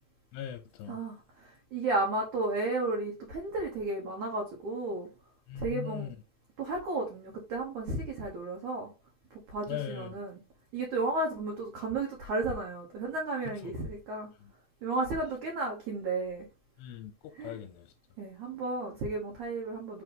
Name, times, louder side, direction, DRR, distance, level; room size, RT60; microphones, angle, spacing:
voice 1, 0.3-1.0 5.5-6.1 9.7-10.1 13.5-13.7 14.4-14.5 16.8-17.1 17.4-17.9, left 12 dB, 80° left, 2.7 m, -39 dB
voice 2, 0.9-5.1 5.5-6.1 6.6-8.9 9.5-10.4 10.7-14.3 14.8-16.5 17.4-17.6 18.2-20.0, right 2 dB, 65° right, 2.0 m, -33 dB
6.7 x 3.7 x 5.3 m
omnidirectional pair, 5.1 m